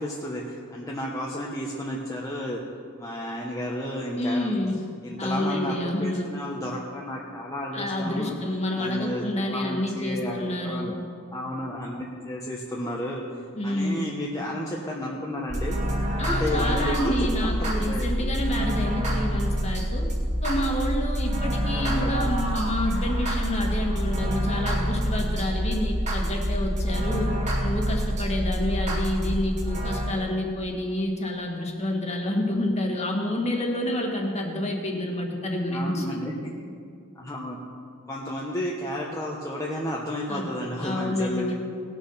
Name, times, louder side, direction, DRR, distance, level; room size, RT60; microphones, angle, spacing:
voice 1, 0.0-2.6 3.0-4.5 5.0-8.3 8.8-10.9 11.3-13.2 13.6-15.8 16.3-18.3 21.7-22.3 35.7-36.6 37.1-37.6 38.1-41.5, left 1 dB, 15° left, -4 dB, 1.1 m, -32 dB
voice 2, 4.1-4.8 5.2-6.3 7.7-10.9 13.5-14.1 16.2-20.1 20.4-27.3 27.6-36.2 40.3-40.5 40.8-41.5, left 1 dB, 30° left, 1 dB, 1.8 m, -28 dB
sound 1, 15.5-30.1, equal, 35° right, 2.3 m, -26 dB
19.5 x 6.7 x 5.7 m, 2.3 s
head